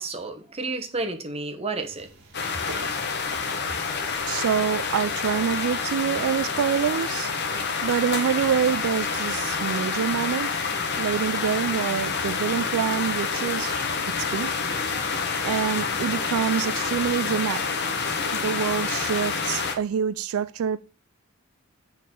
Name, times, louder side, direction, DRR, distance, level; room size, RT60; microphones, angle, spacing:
voice 1, 0.0-2.1, right 3 dB, 30° right, 1.1 m, -31 dB
sound 1, 1.8-7.2, right 2 dB, 55° right, 1.7 m, -49 dB
sound 2, 2.3-19.8, left 5 dB, 55° left, 1.1 m, -28 dB
voice 2, 4.3-7.3 7.8-10.5 11.0-13.8 14.2-14.5 15.4-17.7 18.4-20.8, right 8 dB, 90° right, 0.3 m, -26 dB
6.7 x 4.0 x 6.3 m
head